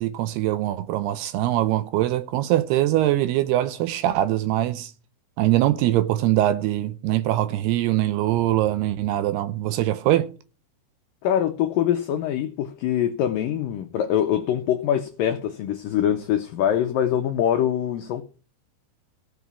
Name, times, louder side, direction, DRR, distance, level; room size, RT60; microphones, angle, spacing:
voice 1, 0.0-4.9 5.4-10.3, right 14 dB, 80° right, 2.5 m, -22 dB
voice 2, 11.2-18.2, left 10 dB, 85° left, 1.9 m, -24 dB
15.5 x 6.2 x 6.9 m
omnidirectional pair, 5.0 m